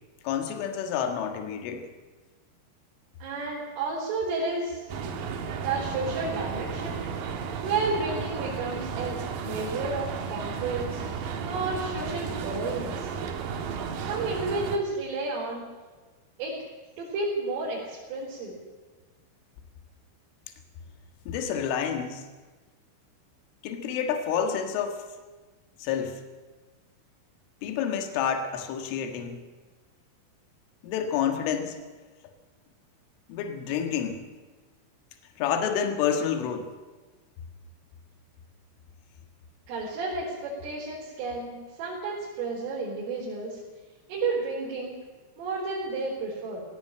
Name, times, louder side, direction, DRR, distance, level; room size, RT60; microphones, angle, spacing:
voice 1, 0.2-1.9 21.3-22.3 23.6-25.1 25.8-26.2 27.6-29.4 30.8-31.8 33.3-34.2 35.4-36.7, left 8 dB, 80° left, 5 dB, 4.1 m, -29 dB
voice 2, 3.2-4.9 5.6-7.0 7.6-9.2 9.4-11.0 11.4-13.1 14.0-15.6 16.4-16.5 17.0-18.6 39.7-43.6 44.1-45.0 45.4-46.6, right 3 dB, 85° right, -6 dB, 6.8 m, -31 dB
sound 1, 4.9-14.8, right 6 dB, 60° right, 2.6 m, -33 dB
17.5 x 17.0 x 8.9 m, 1.3 s
omnidirectional pair, 5.7 m